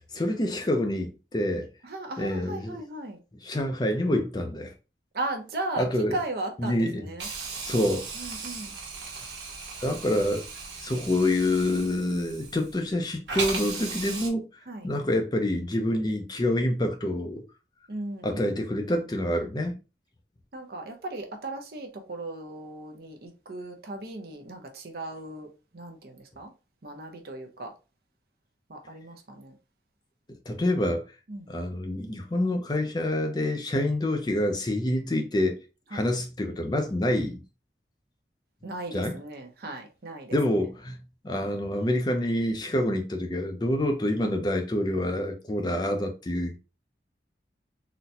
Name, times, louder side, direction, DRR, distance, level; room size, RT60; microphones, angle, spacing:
voice 1, 0.1-1.7 2.2-2.8 3.4-4.7 5.8-6.2 6.6-7.0 7.6-8.3 9.8-10.4 10.8-14.4 14.8-17.4 18.2-19.8 30.5-31.0 31.5-35.6 35.9-37.4 38.9-39.1 40.3-46.6, left 1 dB, 25° left, 0.5 m, -27 dB
voice 2, 1.8-3.2 5.1-7.3 8.1-8.8 14.7-14.9 17.9-18.7 20.5-25.5 25.7-26.5 26.8-27.7 28.7-29.5 31.3-31.5 35.9-36.0 38.6-40.4, right 2 dB, 60° right, 0.7 m, -37 dB
Hiss, 7.2-12.9 13.3-14.3, right 4 dB, 80° right, 1.1 m, -37 dB
3.9 x 2.1 x 2.7 m
head